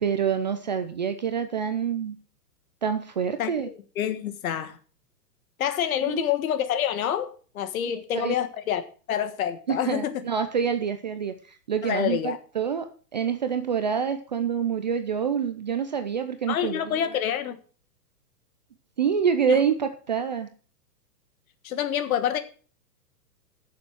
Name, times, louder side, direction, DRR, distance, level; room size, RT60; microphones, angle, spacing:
voice 1, 0.0-2.2 2.8-3.7 6.0-6.2 7.8-8.4 9.7-17.0 19.0-20.5, right 7 dB, 30° right, 0.4 m, -27 dB
voice 2, 3.4-4.8 5.6-8.8 9.1-10.2 11.8-12.4 16.5-17.6 19.5-19.6 21.6-22.4, left 10 dB, 60° left, 1.6 m, -27 dB
10.5 x 6.9 x 6.1 m
hypercardioid pair, 160°, 48 cm